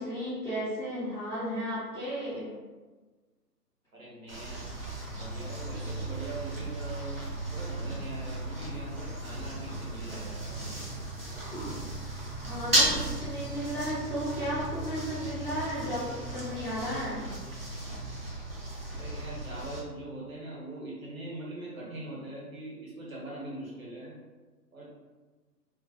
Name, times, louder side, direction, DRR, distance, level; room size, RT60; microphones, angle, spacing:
voice 1, 0.0-2.5 12.4-17.2, equal, 5° left, -20 dB, 1.0 m, -34 dB
voice 2, 3.9-4.6 5.2-7.2 7.5-10.9 18.9-24.1 24.7-25.0, right 1 dB, 55° right, -5 dB, 0.9 m, -42 dB
sound 1, 4.3-13.6, equal, 45° left, 0.6 m, -48 dB
sound 2, 4.3-19.8, right 1 dB, 40° right, 0.4 m, -35 dB
2.3 x 2.1 x 2.6 m, 1.3 s
figure-of-eight pair, 155°, 49 cm